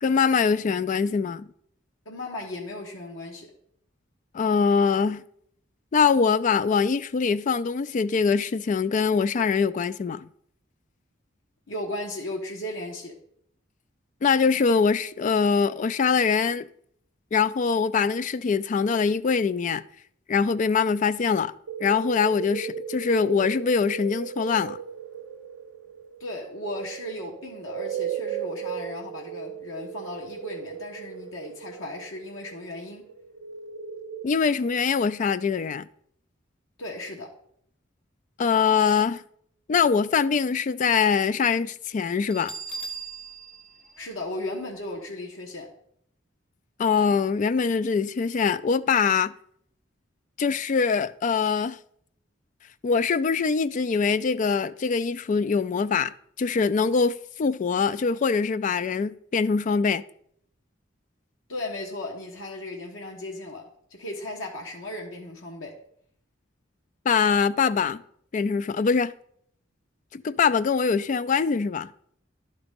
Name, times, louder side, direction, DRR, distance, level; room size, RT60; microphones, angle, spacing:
voice 1, 0.0-1.5 4.3-5.2 5.9-10.3 14.2-16.7 17.3-19.8 20.3-21.5 21.8-24.8 34.2-35.8 38.4-39.2 39.7-42.5 46.8-49.3 50.4-51.8 52.8-56.1 56.4-60.0 67.1-68.0 68.3-69.1 70.1-71.9, left 5 dB, 40° left, 0.3 m, -23 dB
voice 2, 2.0-3.5 11.7-13.1 26.2-33.0 36.8-37.3 44.0-45.7 61.5-63.6 63.9-65.7, left 1 dB, 85° left, 1.3 m, -36 dB
sound 1, 21.7-34.3, right 7 dB, 75° right, 0.5 m, -36 dB
Bell, 42.3-45.0, right 4 dB, 5° left, 0.7 m, -39 dB
11.0 x 4.0 x 5.2 m
head